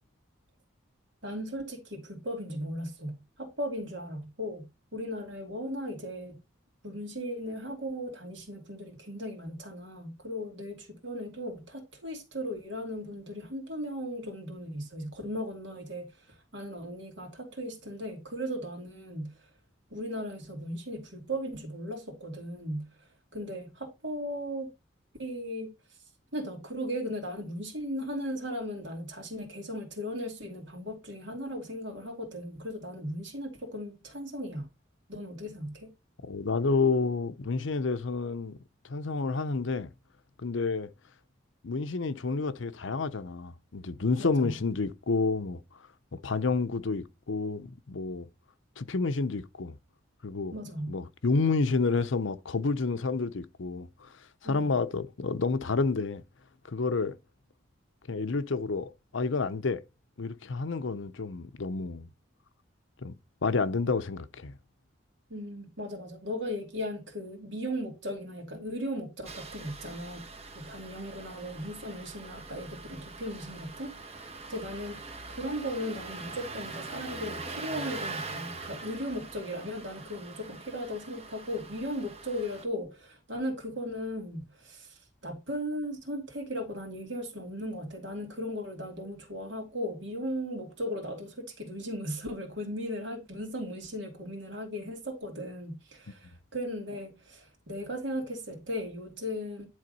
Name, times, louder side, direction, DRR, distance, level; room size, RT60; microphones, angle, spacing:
voice 1, 1.2-6.4 6.8-19.5 19.9-24.7 25.2-25.7 26.3-34.7 35.1-35.9 44.2-44.5 50.5-51.0 54.4-54.7 65.3-99.7, equal, 65° right, 2.6 m, -37 dB
voice 2, 36.2-38.6 38.8-39.9 40.4-40.9 41.6-45.6 46.1-48.3 48.8-49.8 50.2-50.5 50.9-54.1 54.4-56.2 56.6-57.2 58.1-59.8 60.2-62.1 63.0-63.1 63.4-64.5, left 4 dB, 75° left, 0.7 m, -29 dB
Engine starting, 69.3-82.7, right 3 dB, 30° right, 1.1 m, -43 dB
10.5 x 3.6 x 5.3 m
head